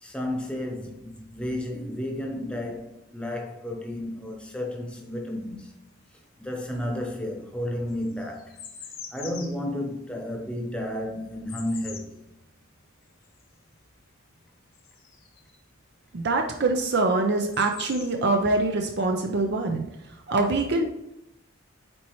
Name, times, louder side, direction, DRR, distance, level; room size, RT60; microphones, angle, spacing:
voice 1, 0.0-5.7 6.4-8.6 9.1-12.2, left 1 dB, 5° left, 0.9 m, -32 dB
sound 1, 4.9-6.1 6.4-15.7 16.8-16.9 17.1-18.6, left 7 dB, 45° left, 1.0 m, -45 dB
voice 2, 16.1-19.9 20.3-20.9, right 2 dB, 50° right, 0.5 m, -24 dB
8.7 x 4.2 x 3.1 m
head